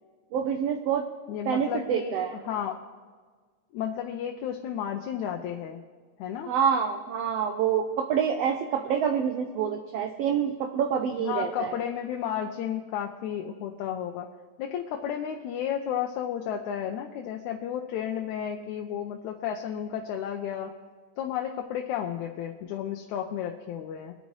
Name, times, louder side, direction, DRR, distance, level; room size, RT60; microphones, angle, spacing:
voice 1, 0.3-1.1 1.5-2.4 6.5-11.7, right 8 dB, 75° right, 4 dB, 1.5 m, -27 dB
voice 2, 1.3-2.2 2.5-2.8 3.7-5.8 6.2-6.5 11.2-14.3 14.6-20.7 21.2-24.2, left 9 dB, 80° left, 3 dB, 2.0 m, -32 dB
24.0 x 9.4 x 3.2 m, 1.5 s
omnidirectional pair, 3.5 m